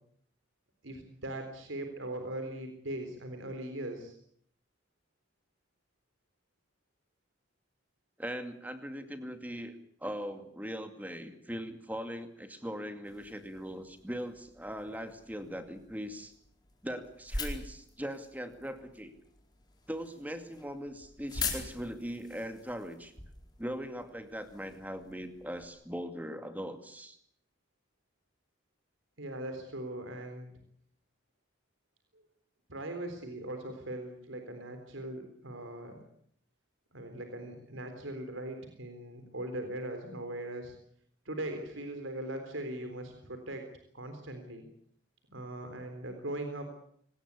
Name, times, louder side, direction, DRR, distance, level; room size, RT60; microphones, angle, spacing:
voice 1, 0.8-4.2 29.2-30.5 32.7-36.0 36.9-40.7 41.3-43.7 43.9-44.7 45.3-46.7, right 1 dB, 85° right, 6 dB, 3.8 m, -40 dB
voice 2, 8.2-9.8 10.0-16.3 16.8-19.1 19.9-23.1 23.6-27.2, equal, 10° right, 8 dB, 2.3 m, -40 dB
sound 1, 13.0-25.7, left 4 dB, 20° left, 4.4 m, -44 dB
24.5 x 19.5 x 8.3 m, 0.65 s
head